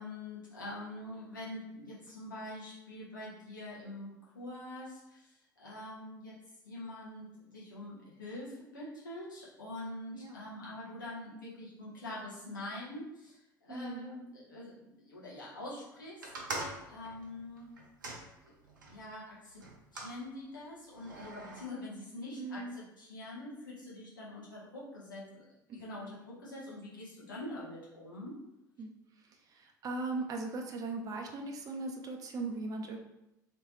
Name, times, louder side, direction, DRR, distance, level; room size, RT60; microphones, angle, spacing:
voice 1, 0.0-6.4 6.6-17.7 18.4-18.5 18.8-19.6 19.9-25.4 25.7-28.4, left 1 dB, 80° left, -7 dB, 1.2 m, -45 dB
voice 2, 13.7-14.1 22.4-22.8 28.8-28.9 29.5-33.0, right 3 dB, 35° right, 3 dB, 0.6 m, -38 dB
sound 1, 16.2-19.0 19.6-20.2 20.9-21.6, right 2 dB, 80° right, 0.6 m, -43 dB
3.2 x 3.1 x 3.1 m, 0.89 s
figure-of-eight pair, 65°, 10 cm